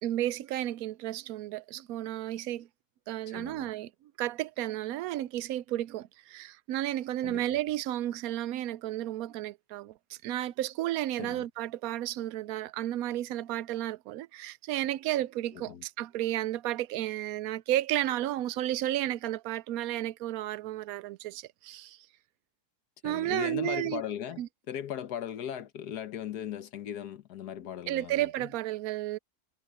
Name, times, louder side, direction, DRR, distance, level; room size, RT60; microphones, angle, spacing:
voice 1, 0.0-2.7 3.1-3.9 4.2-22.0 23.0-24.0 24.4-24.5 27.9-29.2, right 14 dB, 70° right, 1.0 m, -32 dB
voice 2, 3.3-3.7 7.2-7.6 11.2-11.5 15.5-15.8 23.0-28.5, left 9 dB, 80° left, 1.6 m, -38 dB
omnidirectional pair, 1.7 m